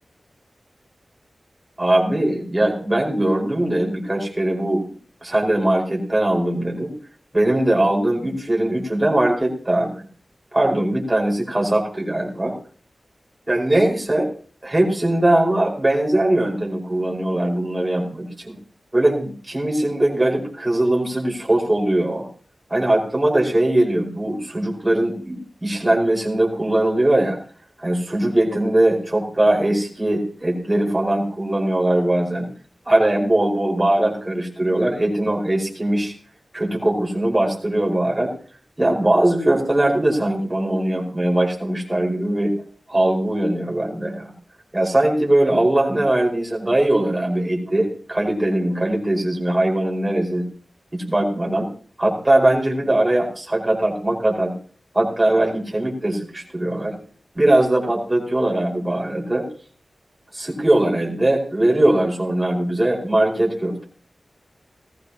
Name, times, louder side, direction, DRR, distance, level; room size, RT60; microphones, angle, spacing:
voice 1, 1.8-4.9 5.2-6.9 7.3-10.0 10.5-12.6 13.5-14.3 14.6-18.6 18.9-22.3 22.7-27.4 27.8-32.5 32.9-36.1 36.5-38.3 38.8-42.5 42.9-44.3 44.7-50.4 50.9-51.7 52.0-54.5 54.9-57.0 57.3-59.5 60.3-63.8, right 1 dB, 25° right, -1 dB, 4.9 m, -20 dB
18.0 x 15.0 x 2.9 m, 0.43 s
cardioid pair, 40°, 0 cm